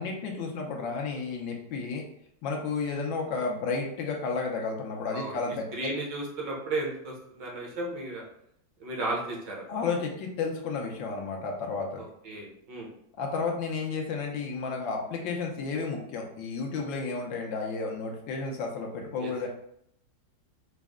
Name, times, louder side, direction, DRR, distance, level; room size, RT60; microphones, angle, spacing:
voice 1, 0.0-2.0 2.4-5.7 9.7-12.0 13.2-19.5, left 4 dB, 80° left, 0 dB, 1.4 m, -32 dB
voice 2, 5.7-8.2 8.8-9.8 12.0-12.9 19.2-19.5, right 2 dB, 70° right, -1 dB, 1.5 m, -34 dB
5.1 x 2.1 x 3.5 m, 0.72 s
omnidirectional pair, 2.1 m